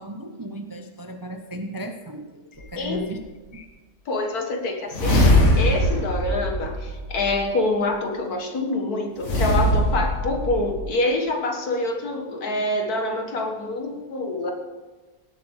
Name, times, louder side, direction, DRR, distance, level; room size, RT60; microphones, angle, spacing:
voice 1, 0.0-2.2 2.6-3.2 3.5-3.6, right 1 dB, 25° right, 5 dB, 0.4 m, -35 dB
sound 1, 2.6-2.7 4.9-7.4 9.2-10.9, equal, 50° left, 2.1 m, -21 dB
voice 2, 2.8-3.1 4.1-14.5, left 2 dB, 80° left, 3 dB, 2.1 m, -26 dB
17.5 x 7.9 x 4.8 m, 1.2 s
omnidirectional pair, 1.6 m